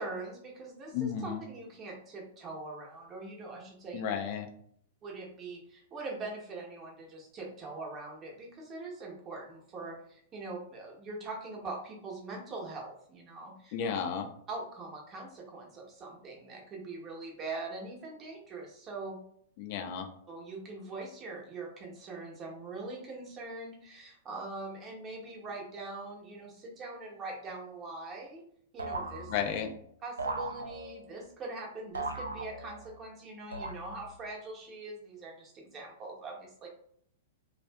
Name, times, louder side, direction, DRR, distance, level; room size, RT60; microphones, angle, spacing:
voice 1, 0.0-4.1 5.0-13.8 14.5-19.2 20.3-28.4 28.7-29.3 30.0-36.7, right 3 dB, 30° right, -1 dB, 0.8 m, -42 dB
voice 2, 0.9-1.4 3.9-4.5 13.7-14.3 19.6-20.1 29.3-29.7, left 7 dB, 50° left, 5 dB, 0.4 m, -33 dB
sound 1, 28.8-29.7 30.2-31.1 32.0-33.0 33.5-34.2, right 2 dB, 90° right, 0.3 m, -38 dB
2.5 x 2.4 x 2.2 m, 0.66 s
figure-of-eight pair, 105°, 0 cm